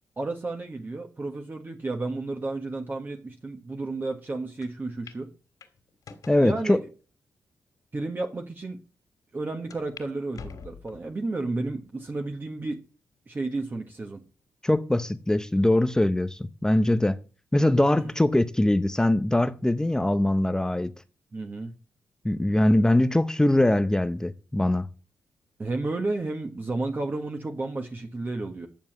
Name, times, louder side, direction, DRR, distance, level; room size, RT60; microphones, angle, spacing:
voice 1, 0.2-5.3 6.4-6.8 7.9-8.8 9.3-12.8 13.3-14.2 18.0-18.1 21.3-21.7 25.6-28.7, right 2 dB, 30° right, 1.6 m, -32 dB
sound 1, 4.6-4.7 5.1-5.2 5.6-6.5 7.1-7.2 8.0-8.1 8.3-8.4 9.7-10.1 10.3-11.1 11.7-12.1 12.6-12.7 13.9-14.3, left 6 dB, 65° left, 2.8 m, -46 dB
voice 2, 6.3-6.8 14.6-17.2 17.5-20.9 22.2-24.9, left 1 dB, 10° left, 0.8 m, -22 dB
11.0 x 7.1 x 7.5 m
cardioid pair, 85°, 6 cm